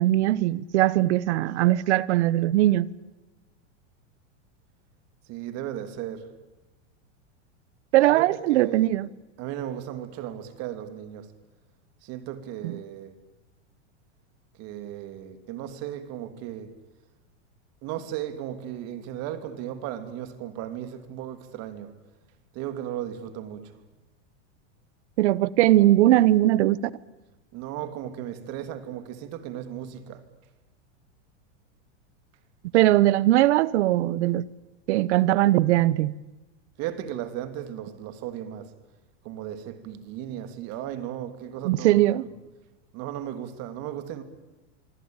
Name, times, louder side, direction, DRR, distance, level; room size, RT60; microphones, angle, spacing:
voice 1, 0.0-2.9 7.9-9.1 12.6-12.7 25.2-26.9 32.7-34.4 34.9-36.1 41.6-42.2, right 15 dB, 70° right, 1.1 m, -20 dB
voice 2, 5.2-6.3 8.1-8.9 9.4-11.3 12.0-13.2 14.5-16.8 17.8-22.0 22.5-23.8 27.5-30.3 36.8-38.8 39.2-42.3 42.9-44.2, right 11 dB, 45° right, 3.0 m, -36 dB
25.5 x 25.0 x 9.0 m
supercardioid pair, 140°, 36 cm